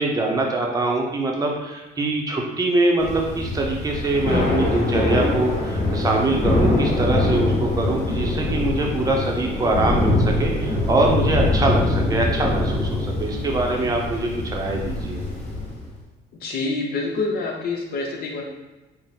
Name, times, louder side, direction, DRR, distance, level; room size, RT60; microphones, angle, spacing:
voice 1, 0.0-15.2, right 2 dB, 20° right, 0 dB, 0.7 m, -23 dB
Thunder / Rain, 3.0-15.9, left 2 dB, 40° left, 1.1 m, -23 dB
voice 2, 16.4-18.4, left 3 dB, 65° left, 1 dB, 0.8 m, -26 dB
3.6 x 2.1 x 4.2 m, 1.1 s
cardioid pair, 110°, 17 cm